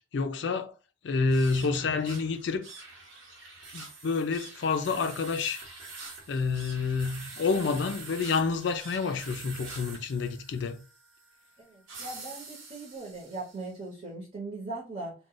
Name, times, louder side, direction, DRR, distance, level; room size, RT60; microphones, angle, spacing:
voice 1, 0.1-0.7 1.0-2.7 3.7-5.6 6.3-10.8, left 4 dB, 65° left, 0.4 m, -28 dB
sound 1, 1.2-13.7, right 3 dB, 90° right, 0.9 m, -46 dB
voice 2, 11.6-15.1, right 2 dB, 40° right, 0.9 m, -39 dB
2.4 x 2.1 x 3.8 m
head